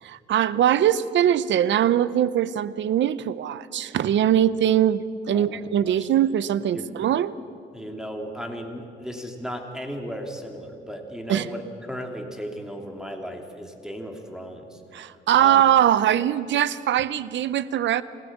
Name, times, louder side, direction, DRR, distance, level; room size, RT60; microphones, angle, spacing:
voice 1, 0.0-7.3 11.3-11.5 14.9-18.0, right 10 dB, 65° right, 17 dB, 0.8 m, -21 dB
voice 2, 7.7-11.6 11.9-14.8 15.4-15.6, equal, 5° right, 3 dB, 2.7 m, -35 dB
27.5 x 16.5 x 7.4 m, 2.6 s
cardioid pair, 90°, 20 cm